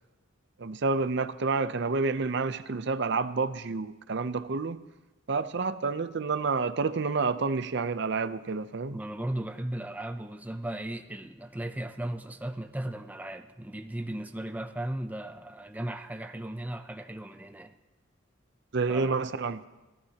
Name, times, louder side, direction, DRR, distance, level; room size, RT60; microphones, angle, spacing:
voice 1, 0.6-4.8 5.3-9.0 18.7-19.6, right 4 dB, 60° right, 0.6 m, -29 dB
voice 2, 8.9-17.7 18.9-19.2, right 1 dB, 10° right, 0.5 m, -36 dB
25.0 x 16.0 x 2.9 m
head